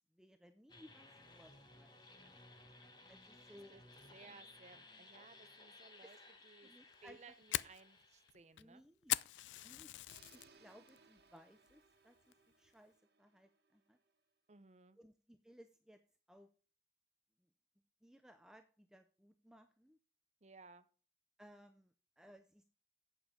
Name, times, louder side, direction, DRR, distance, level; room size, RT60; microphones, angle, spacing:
voice 1, 0.1-1.1 1.3-2.6 3.1-3.8 6.0-6.2 6.6-7.2 8.6-9.2 9.6-10.0 10.3-12.2 12.6-14.0 15.0-16.0 16.3-16.5 18.0-20.0 21.4-22.6, equal, 5° right, 7 dB, 0.5 m, -62 dB
sound 1, 0.7-8.3, left 2 dB, 25° left, 1.3 m, -60 dB
voice 2, 3.5-3.8 4.1-6.2 6.4-6.7 7.0-8.8 14.5-15.0 20.4-20.9, right 4 dB, 40° right, 12 dB, 0.7 m, -60 dB
Fire, 6.9-10.5 10.9-11.3 11.7-11.8 12.3-12.7, left 14 dB, 90° left, 0.3 m, -41 dB
sound 2, 10.1-14.1, right 4 dB, 60° right, 1.4 m, -67 dB
8.6 x 7.0 x 5.0 m, 0.38 s
head